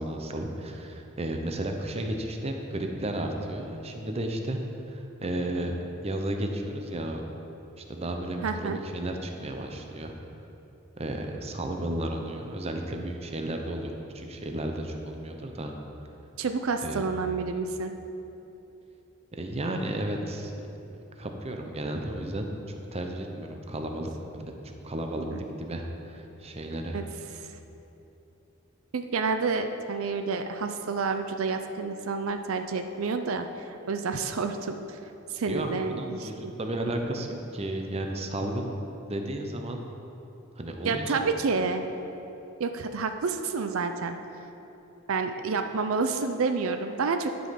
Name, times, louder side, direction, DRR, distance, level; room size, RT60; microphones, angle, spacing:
voice 1, 0.0-4.6 4.9-5.7 6.0-7.2 7.8-10.1 11.0-15.7 16.8-17.1 19.3-20.5 21.2-22.5 22.9-27.0 35.5-38.8 39.0-39.8 40.6-41.2, right 1 dB, 30° right, 3 dB, 0.7 m, -33 dB
voice 2, 8.4-8.8 16.4-17.9 25.3-25.4 26.9-27.0 27.4-27.5 28.9-35.0 35.3-36.5 40.8-41.8 42.6-44.1 45.1-47.3, right 4 dB, 75° right, 7 dB, 0.5 m, -29 dB
11.0 x 5.3 x 5.8 m, 3.0 s
head